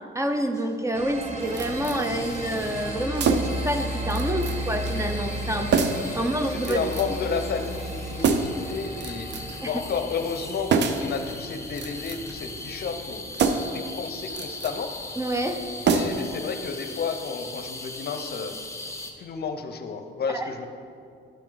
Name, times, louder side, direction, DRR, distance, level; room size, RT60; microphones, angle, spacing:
voice 1, 0.1-5.8 6.1-6.8 9.6-9.7 15.2-15.6 20.3-20.5, right 1 dB, 15° right, 6 dB, 0.6 m, -28 dB
sound 1, 0.5-1.0 1.4-19.1, left 2 dB, 15° left, 0.8 m, -40 dB
sound 2, 0.9-16.4, equal, 35° right, 1.1 m, -35 dB
sound 3, 1.6-2.0 3.1-3.7 4.1-4.6 4.8-5.0 5.7-6.1 6.6-7.2 8.2-8.6 9.0-9.6 10.7-11.1 11.7-12.4 13.3-13.8 14.3-14.8 15.8-16.4 16.7-16.8, right 5 dB, 60° right, 0.6 m, -25 dB
voice 2, 6.3-9.3 9.7-13.2 13.7-15.0 15.8-18.6 19.2-20.7, left 5 dB, 55° left, 7 dB, 0.7 m, -31 dB
12.5 x 4.5 x 3.8 m, 2.3 s
cardioid pair, 90°, 20 cm